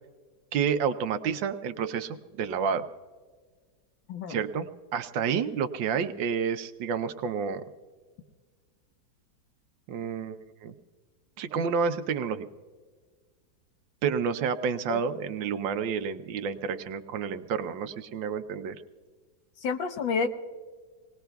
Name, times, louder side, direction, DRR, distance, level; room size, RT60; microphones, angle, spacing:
voice 1, 0.5-2.9 4.3-7.6 9.9-10.7 11.4-12.4 14.0-18.8, right 6 dB, 75° right, 10 dB, 1.3 m, -30 dB
voice 2, 19.6-20.3, left 5 dB, 75° left, 7 dB, 1.7 m, -29 dB
26.0 x 19.5 x 2.3 m, 1.5 s
omnidirectional pair, 2.1 m